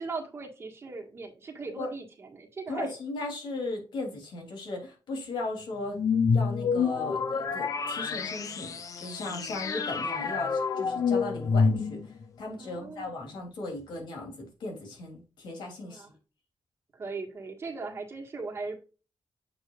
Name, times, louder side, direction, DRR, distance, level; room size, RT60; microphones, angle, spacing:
voice 1, 0.0-2.9 12.6-13.2 15.8-16.1 16.9-18.8, right 3 dB, 35° right, 1 dB, 1.7 m, -39 dB
voice 2, 2.7-6.0 6.3-16.0, left 2 dB, 90° left, 1 dB, 3.2 m, -37 dB
sound 1, 5.9-12.2, left 5 dB, 45° left, 0.7 m, -28 dB
8.6 x 6.3 x 2.5 m, 0.34 s
wide cardioid pair, 180°, 8 cm